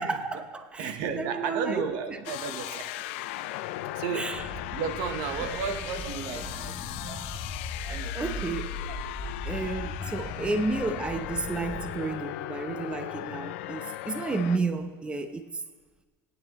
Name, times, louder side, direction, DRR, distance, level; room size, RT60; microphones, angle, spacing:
voice 1, 0.0-2.2 4.1-4.5 7.8-8.8 9.5-15.5, right 3 dB, 15° right, 8 dB, 0.8 m, -32 dB
voice 2, 0.8-2.9 3.9-7.5 7.9-8.5 8.9-9.0 9.8-10.4, right 6 dB, 70° right, 8 dB, 1.0 m, -34 dB
sound 1, 2.2-14.6, left 14 dB, 80° left, 0.5 m, -38 dB
sound 2, 4.3-11.9, left 3 dB, 35° left, 2.6 m, -38 dB
21.0 x 9.5 x 3.0 m, 1.4 s
supercardioid pair, 115°, 6 cm